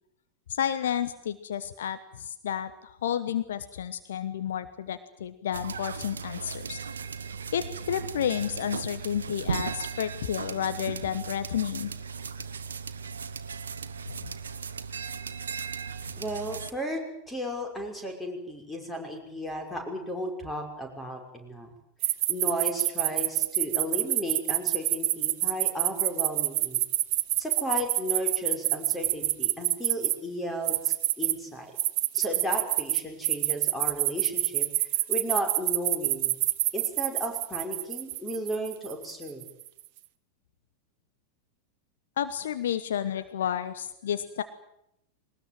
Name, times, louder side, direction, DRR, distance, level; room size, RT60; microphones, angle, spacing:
voice 1, 0.5-6.8 7.5-11.9 14.2-14.3 42.2-44.4, left 9 dB, 60° left, 12 dB, 1.1 m, -31 dB
sound 1, 5.5-16.7, right 6 dB, 70° right, 1.1 m, -37 dB
voice 2, 16.2-17.0 17.3-21.7 22.3-26.8 27.4-31.7 32.1-36.3 36.7-39.4, equal, 10° left, 4 dB, 5.7 m, -34 dB
sound 2, 22.0-30.1 30.7-31.3 31.8-39.6, right 16 dB, 45° right, 1.0 m, -26 dB
21.5 x 19.5 x 9.3 m, 0.78 s
figure-of-eight pair, 90°, 0 cm